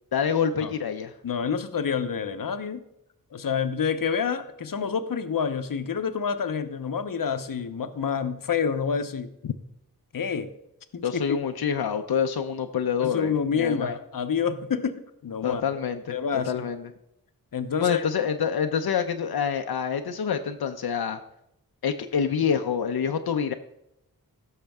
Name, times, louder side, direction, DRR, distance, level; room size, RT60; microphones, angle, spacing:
voice 1, 0.1-1.1 9.4-9.5 11.0-13.9 15.4-16.1 16.5-16.9 17.8-21.2 21.8-23.5, left 7 dB, 90° left, 6 dB, 0.6 m, -26 dB
voice 2, 1.2-2.8 3.3-9.3 10.1-10.5 10.9-11.4 13.0-15.6 16.1-16.7 17.5-18.1, left 6 dB, 65° left, 10 dB, 0.8 m, -28 dB
15.5 x 6.5 x 3.5 m, 0.83 s
wide cardioid pair, 75°, 37 cm